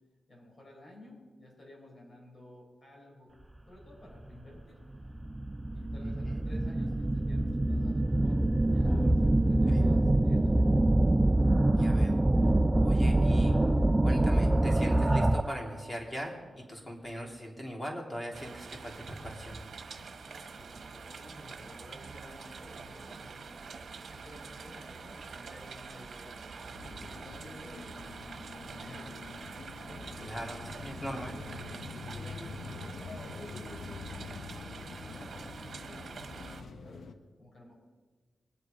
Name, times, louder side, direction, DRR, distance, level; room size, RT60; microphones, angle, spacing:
voice 1, 0.3-3.3 3.7-4.8 5.7-10.5 19.8-29.2 29.7-31.2 31.7-37.0 37.4-37.7, left 1 dB, 45° left, -2 dB, 5.0 m, -53 dB
sound 1, 4.2-4.3 5.0-15.7, right 1 dB, 20° right, 0.4 m, -25 dB
voice 2, 11.8-12.2 12.8-13.6 14.0-16.4 16.7-19.6 30.2-31.4, equal, 20° left, 0 dB, 3.4 m, -40 dB
sound 2, 18.3-36.6, right 5 dB, 70° right, 1.3 m, -46 dB
sound 3, 26.7-37.1, left 4 dB, 75° left, 0.8 m, -45 dB
22.5 x 8.2 x 5.2 m, 1.4 s
cardioid pair, 75°, 0 cm